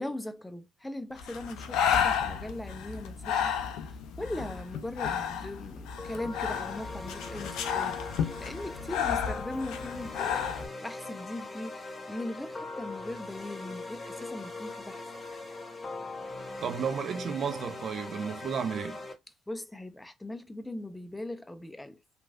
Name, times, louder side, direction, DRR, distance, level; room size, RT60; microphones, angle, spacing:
voice 1, 0.0-3.5 3.9-15.0 19.5-22.0, left 1 dB, 10° left, 0.5 m, -40 dB
Breathing, 1.2-10.7, left 8 dB, 70° left, 0.4 m, -32 dB
sound 1, 6.0-19.1, left 2 dB, 25° left, 0.9 m, -41 dB
voice 2, 16.6-19.0, right 7 dB, 55° right, 0.5 m, -32 dB
3.0 x 2.5 x 2.3 m
hypercardioid pair, 45°, 0 cm